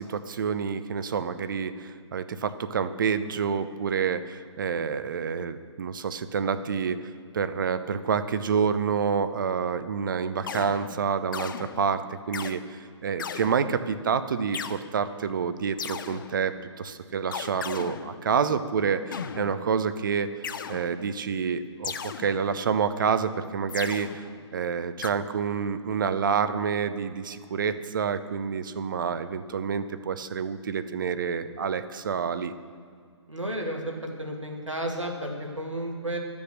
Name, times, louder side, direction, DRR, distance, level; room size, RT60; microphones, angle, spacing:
voice 1, 0.0-7.0 7.3-20.3 20.7-24.2 24.5-32.5, right 6 dB, 45° right, 11 dB, 0.7 m, -28 dB
sound 1, 10.4-12.6 13.2-14.0 14.5-14.8 15.8-16.6 17.3-18.5 19.1-19.9 20.4-21.3 21.8-22.8 23.7-24.5 25.0-25.1, left 7 dB, 45° left, 0.6 m, -37 dB
voice 2, 33.3-36.2, right 1 dB, 90° right, 1 dB, 2.2 m, -32 dB
13.0 x 7.0 x 6.5 m, 2.2 s
figure-of-eight pair, 130°, 15 cm